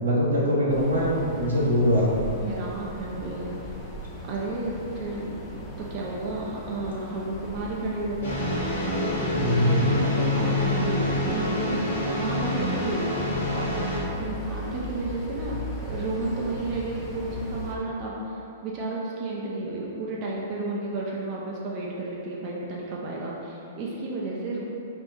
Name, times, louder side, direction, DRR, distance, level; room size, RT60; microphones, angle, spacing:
voice 1, 0.0-2.2 9.4-9.8, equal, 85° right, -5 dB, 0.9 m, -22 dB
sound 1, 0.7-17.8, left 1 dB, 20° left, 0.7 m, -38 dB
voice 2, 2.4-3.5 4.3-5.4 5.8-9.3 9.7-13.7 14.1-15.6 15.8-24.6, right 2 dB, 40° right, -4 dB, 0.5 m, -32 dB
sound 2, 8.2-14.0, left 1 dB, 75° left, 1.1 m, -26 dB
4.3 x 3.5 x 2.6 m, 2.9 s
hypercardioid pair, 115°, 0 cm